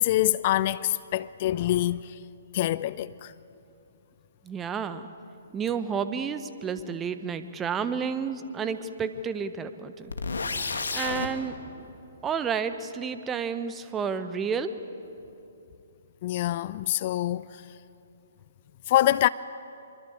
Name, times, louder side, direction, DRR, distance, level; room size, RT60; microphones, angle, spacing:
voice 1, 0.0-2.2 2.5-3.3 16.2-17.6 18.9-19.3, left 14 dB, 40° left, 0.5 m, -25 dB
voice 2, 4.4-5.0 5.5-10.1 10.9-11.5 12.2-14.7, right 6 dB, 15° right, 1.3 m, -31 dB
sound 1, 10.1-11.3, left 4 dB, 75° left, 2.4 m, -30 dB
26.0 x 23.5 x 8.0 m
figure-of-eight pair, 130°, 0 cm